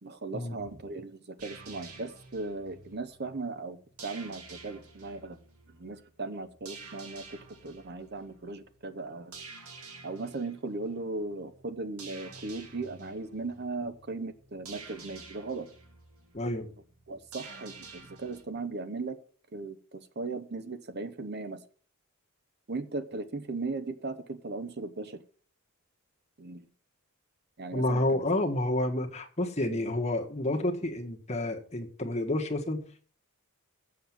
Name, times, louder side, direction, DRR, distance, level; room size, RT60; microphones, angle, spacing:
voice 1, 0.0-5.4 5.8-9.4 10.0-15.7 17.1-19.2 19.5-21.6 22.7-25.2 26.4-26.7 27.6-28.2 29.7-29.8, right 3 dB, 50° right, 11 dB, 0.9 m, -37 dB
sound 1, 1.4-18.4, right 4 dB, 90° right, 1.9 m, -50 dB
voice 2, 16.3-16.7 27.7-32.8, left 1 dB, 30° left, 2 dB, 1.5 m, -29 dB
7.7 x 7.3 x 7.2 m, 0.43 s
head